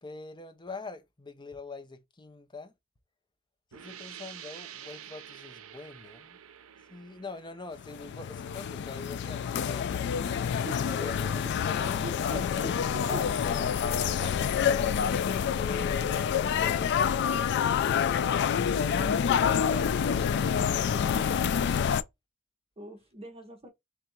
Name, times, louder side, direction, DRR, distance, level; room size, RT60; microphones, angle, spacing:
voice 1, 0.0-2.7 3.7-6.4 6.9-10.5 10.9-17.9, left 4 dB, 20° left, 0.6 m, -44 dB
sound 1, 3.7-9.2, right 10 dB, 90° right, 0.5 m, -49 dB
sound 2, 7.8-22.0, left 7 dB, 55° left, 0.3 m, -27 dB
voice 2, 10.7-11.4 11.7-13.8 22.8-23.7, right 1 dB, 30° right, 0.8 m, -43 dB
3.5 x 2.6 x 4.4 m
head